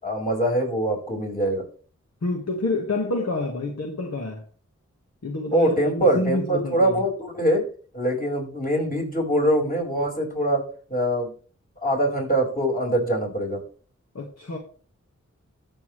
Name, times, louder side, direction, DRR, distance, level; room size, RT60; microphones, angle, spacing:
voice 1, 0.0-1.7 5.5-7.6 7.9-10.6 10.9-11.3 11.8-13.6, right 1 dB, 30° left, 5.4 m, -23 dB
voice 2, 2.2-4.4 5.2-7.0 14.1-14.6, left 2 dB, 55° left, 1.7 m, -28 dB
14.0 x 7.2 x 3.2 m
cardioid pair, 45°, 30 cm